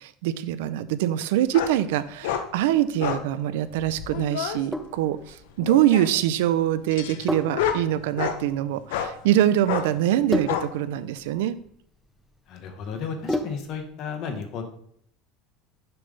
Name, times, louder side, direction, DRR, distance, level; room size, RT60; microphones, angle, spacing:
voice 1, 0.0-11.6, right 12 dB, 90° right, 14 dB, 0.4 m, -24 dB
sound 1, 1.5-1.8 2.2-2.5 3.0-3.3 3.8-4.6 5.6-6.2 6.9-8.4 8.9-9.1 9.7-9.9 10.5-10.7, left 9 dB, 90° left, 0.7 m, -29 dB
Sink (filling or washing), 4.7-13.9, left 1 dB, ahead, 0.4 m, -34 dB
voice 2, 12.5-14.6, left 6 dB, 45° left, 5 dB, 1.1 m, -33 dB
6.9 x 3.3 x 5.3 m, 0.66 s
cardioid pair, 150°, 0 cm